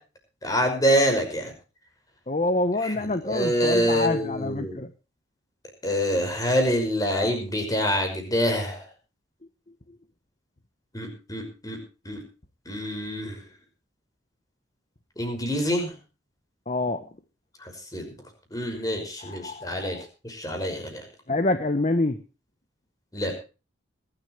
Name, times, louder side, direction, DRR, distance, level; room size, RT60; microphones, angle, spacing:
voice 1, 0.4-1.5 2.8-4.8 5.8-8.8 10.9-11.8 12.1-12.2 12.7-13.4 15.2-15.9 17.6-18.2 18.5-20.0 20.2-21.0 23.1-23.3, equal, 20° left, 4 dB, 5.8 m, -26 dB
voice 2, 2.3-4.9 16.7-17.0 19.2-20.0 21.3-22.2, left 2 dB, 35° left, 9 dB, 1.0 m, -26 dB
21.5 x 13.0 x 3.2 m, 0.33 s
head